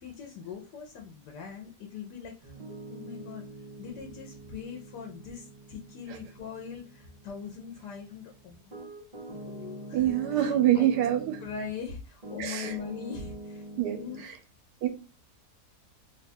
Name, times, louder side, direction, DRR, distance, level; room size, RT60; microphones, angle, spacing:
voice 1, 0.0-2.6 2.9-3.5 3.8-8.7 9.2-10.9 11.4-13.7 13.9-14.3, left 6 dB, 85° left, 1.3 m, -41 dB
Piano, 2.4-11.8 12.2-14.2, right 2 dB, 35° right, 0.7 m, -45 dB
voice 2, 9.9-11.4 12.4-12.8 13.8-14.0 14.8-14.9, right 12 dB, 90° right, 1.2 m, -25 dB
3.0 x 2.3 x 4.2 m
omnidirectional pair, 1.7 m